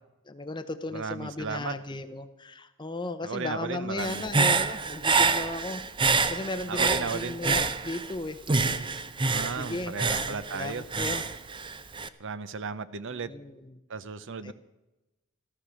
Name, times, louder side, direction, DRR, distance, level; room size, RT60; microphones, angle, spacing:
voice 1, 0.3-5.8 6.3-8.4 8.7-11.2 13.1-13.8 14.4-14.5, left 2 dB, 20° left, 9 dB, 0.7 m, -36 dB
voice 2, 0.9-1.7 3.2-4.3 6.7-7.4 9.2-10.8 12.2-13.3 13.9-14.5, right 5 dB, 55° right, 14 dB, 0.7 m, -35 dB
Human voice / Breathing, 4.0-8.1 8.5-12.1, right 4 dB, 20° right, 0.6 m, -27 dB
15.0 x 13.5 x 6.3 m, 1.0 s
head